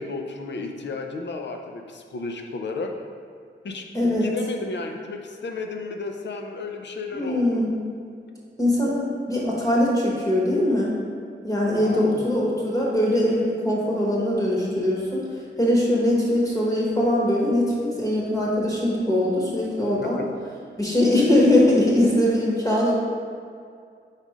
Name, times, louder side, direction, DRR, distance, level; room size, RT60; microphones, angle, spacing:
voice 1, 0.0-2.9 3.6-7.6 11.8-12.2 20.0-20.1, left 3 dB, 65° left, 4 dB, 0.6 m, -33 dB
voice 2, 3.9-4.3 7.1-7.9 8.6-10.9 11.4-15.2 15.6-20.2 20.8-22.9, left 1 dB, 15° left, -5 dB, 1.0 m, -21 dB
5.0 x 4.1 x 4.9 m, 2.2 s
wide cardioid pair, 140°, 20 cm